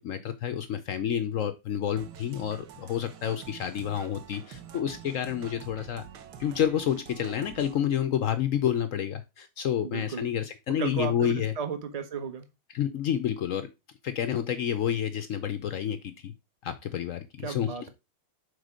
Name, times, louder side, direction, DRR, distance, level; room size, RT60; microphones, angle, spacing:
voice 1, 0.0-6.0 6.4-11.5 12.7-13.7 14.0-16.3 16.6-17.7, left 9 dB, 80° left, 0.7 m, -29 dB
sound 1, 2.0-7.8, right 8 dB, 70° right, 1.3 m, -47 dB
voice 2, 9.8-10.3 10.8-12.5 17.4-17.9, right 6 dB, 35° right, 0.6 m, -34 dB
6.6 x 4.1 x 4.9 m
omnidirectional pair, 2.1 m